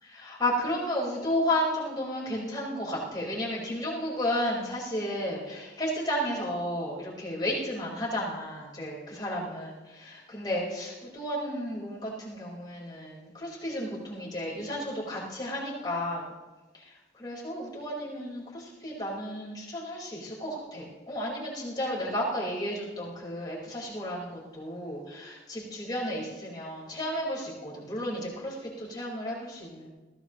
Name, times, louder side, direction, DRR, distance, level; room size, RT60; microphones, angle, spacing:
voice 1, 0.2-16.3 16.7-29.9, left 1 dB, 25° left, -5 dB, 4.5 m, -33 dB
22.0 x 16.0 x 3.0 m, 1.2 s
head